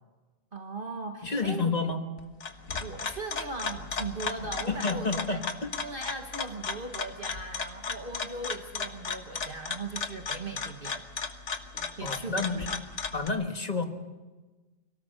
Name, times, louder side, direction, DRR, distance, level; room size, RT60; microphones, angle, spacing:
voice 1, 0.5-1.8 2.8-5.4 5.8-11.0 12.0-12.8, right 3 dB, 40° right, 4 dB, 1.4 m, -39 dB
voice 2, 1.2-2.0 4.7-5.7 12.0-12.8 13.1-13.8, left 4 dB, 30° left, 5 dB, 1.7 m, -30 dB
sound 1, 2.2-13.3, left 5 dB, 60° left, 1.6 m, -35 dB
24.5 x 17.5 x 6.5 m, 1.2 s
omnidirectional pair, 1.4 m